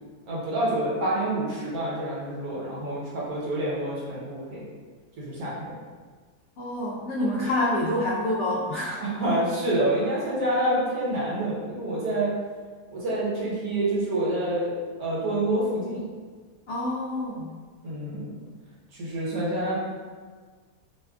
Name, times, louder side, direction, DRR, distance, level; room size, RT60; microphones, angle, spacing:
voice 1, 0.3-4.6 5.2-5.8 9.0-12.3 12.9-14.7 15.0-16.0 17.8-18.4 19.0-19.8, right 1 dB, 70° right, -8 dB, 1.5 m, -27 dB
voice 2, 6.6-9.0 16.7-17.5, left 1 dB, 70° left, -6 dB, 0.7 m, -27 dB
4.8 x 2.2 x 2.4 m, 1.5 s
omnidirectional pair, 1.7 m